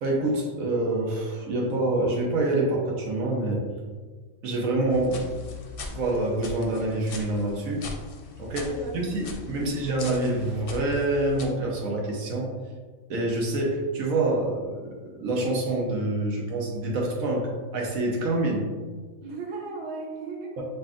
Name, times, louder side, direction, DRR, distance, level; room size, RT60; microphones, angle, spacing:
voice 1, 0.0-3.6 4.4-5.3 5.9-7.8 8.4-12.5 13.1-18.6 20.6-20.7, right 2 dB, 85° right, -2 dB, 1.3 m, -26 dB
sound 1, 4.9-11.5, left 4 dB, 55° left, 0.7 m, -40 dB
voice 2, 8.6-9.2 9.5-9.8 19.2-20.6, right 3 dB, 55° right, -2 dB, 1.1 m, -37 dB
7.6 x 2.6 x 2.4 m, 1.5 s
omnidirectional pair, 1.4 m